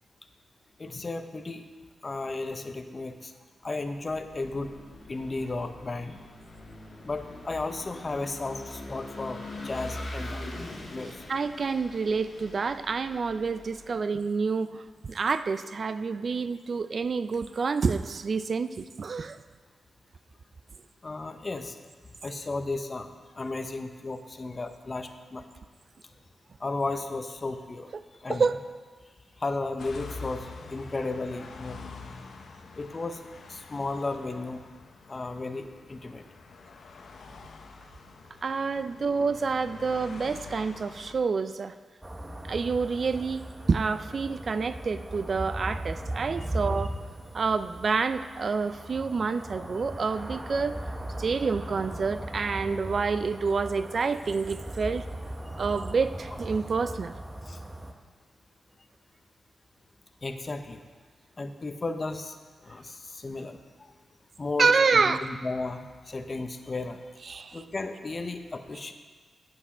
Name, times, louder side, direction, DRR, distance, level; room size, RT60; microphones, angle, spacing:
voice 1, 0.8-1.7 2.0-3.3 3.6-4.7 5.1-6.2 7.0-10.5 10.9-11.2 21.0-21.8 22.2-23.1 23.4-25.4 26.6-27.9 28.2-28.5 29.4-31.9 32.8-33.2 33.5-34.6 35.1-36.2 57.5-57.6 60.2-60.8 61.4-62.3 62.6-63.9 64.4-67.0 67.5-68.9, left 3 dB, 35° left, 8 dB, 0.7 m, -34 dB
Vehicle / Engine, 4.1-13.9, left 1 dB, 50° left, 1.6 m, -42 dB
voice 2, 11.3-19.4 27.9-28.6 38.4-41.8 42.4-43.4 43.7-47.0 47.3-50.8 51.2-55.1 55.6-57.1 64.6-65.3 67.3-67.6, right 4 dB, 50° right, 12 dB, 0.3 m, -28 dB
sound 1, 29.8-41.1, left 4 dB, 75° left, 0.8 m, -46 dB
sound 2, 42.0-57.9, right 1 dB, 15° right, 0.8 m, -38 dB
8.4 x 7.8 x 4.9 m, 1.5 s
cardioid pair, 90°, 0 cm